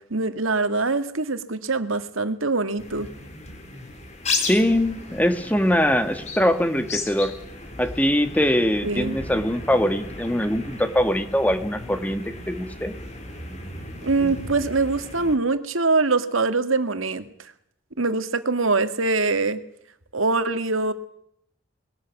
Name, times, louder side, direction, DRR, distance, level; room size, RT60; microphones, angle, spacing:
voice 1, 0.1-3.1 8.8-9.2 14.0-17.3 18.0-19.6 20.1-20.9, right 3 dB, 90° right, 10 dB, 1.9 m, -23 dB
sound 1, 2.8-15.3, left 3 dB, 35° left, 4.0 m, -35 dB
voice 2, 4.4-7.3 7.8-12.9, equal, 10° left, 9 dB, 1.6 m, -22 dB
21.0 x 13.5 x 9.4 m, 0.71 s
head